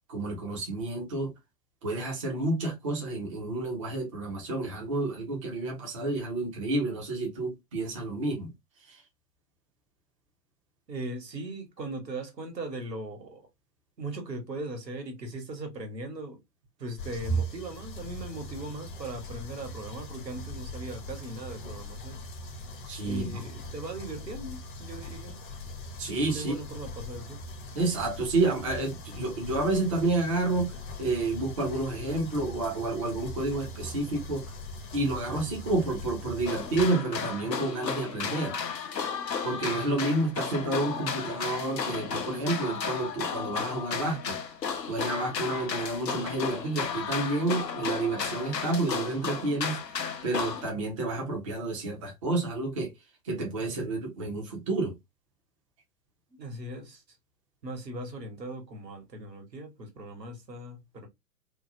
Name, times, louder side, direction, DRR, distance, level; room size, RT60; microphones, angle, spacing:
voice 1, 0.1-1.3 1.8-8.5 8.9-9.0 22.9-23.4 26.0-26.6 27.7-30.7 31.0-34.4 34.9-38.6 39.4-44.4 44.9-49.8 50.2-52.9 53.2-54.9, right 2 dB, 20° right, 0.4 m, -30 dB
voice 2, 10.9-13.4 14.0-16.4 16.8-22.2 23.0-25.4 26.3-27.4 56.4-57.0 57.6-61.1, right 2 dB, 80° right, 1.1 m, -39 dB
sound 1, 17.0-36.9, equal, 30° left, 0.6 m, -40 dB
sound 2, 36.5-50.7, left 6 dB, 85° left, 0.6 m, -34 dB
2.7 x 2.0 x 2.6 m
figure-of-eight pair, 110°, 49 cm